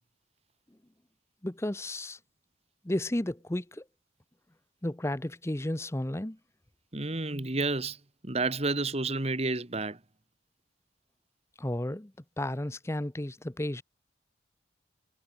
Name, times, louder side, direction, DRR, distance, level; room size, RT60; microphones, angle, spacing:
voice 1, 1.4-2.2 2.8-3.8 4.8-6.4 11.6-12.1 12.4-13.8, left 1 dB, 15° left, 0.8 m, -33 dB
voice 2, 6.9-8.0 8.2-10.0, right 3 dB, 35° right, 1.7 m, -30 dB
head